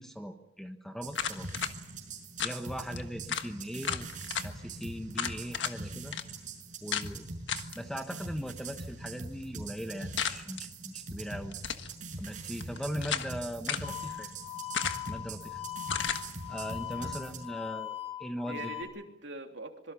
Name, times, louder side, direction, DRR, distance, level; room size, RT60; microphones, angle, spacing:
voice 1, 0.0-1.5 2.4-4.1 4.4-6.2 6.8-7.3 7.7-11.5 12.2-14.3 15.1-15.6 16.5-18.7, equal, ahead, 5 dB, 1.2 m, -39 dB
sound 1, 1.0-17.5, right 3 dB, 45° right, 6.0 m, -43 dB
sound 2, 1.1-1.7 2.4-2.6 3.0-3.1 3.3-3.5 3.8-4.5 5.1-5.8 6.1-6.2 6.9-7.1 7.5-7.8 10.2-10.6 11.5-11.9 12.6-13.3 13.7-13.9 14.7-15.2 15.9-16.2, left 8 dB, 80° left, 1.5 m, -33 dB
sound 3, 13.8-18.8, left 13 dB, 40° left, 6.3 m, -40 dB
voice 2, 16.9-17.6 18.5-19.9, right 2 dB, 75° right, 3 dB, 3.2 m, -44 dB
25.5 x 23.0 x 7.1 m, 0.82 s
head